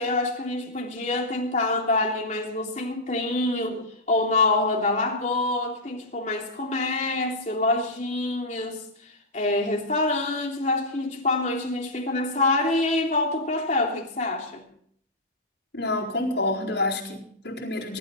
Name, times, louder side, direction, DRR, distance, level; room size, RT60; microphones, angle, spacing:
voice 1, 0.0-8.8 9.3-14.6, left 2 dB, 45° left, 3.1 m, -26 dB
voice 2, 15.7-18.0, left 2 dB, 80° left, 4.4 m, -28 dB
22.5 x 12.5 x 4.2 m
head